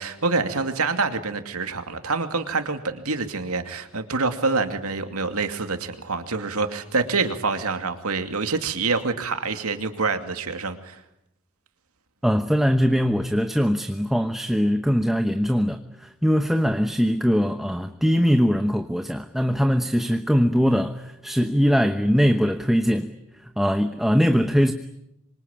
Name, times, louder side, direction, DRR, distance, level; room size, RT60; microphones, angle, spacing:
voice 1, 0.0-11.0, right 4 dB, 85° right, 2.6 m, -26 dB
voice 2, 12.2-23.1 23.6-24.7, equal, ahead, 1.0 m, -21 dB
27.0 x 24.0 x 8.9 m
head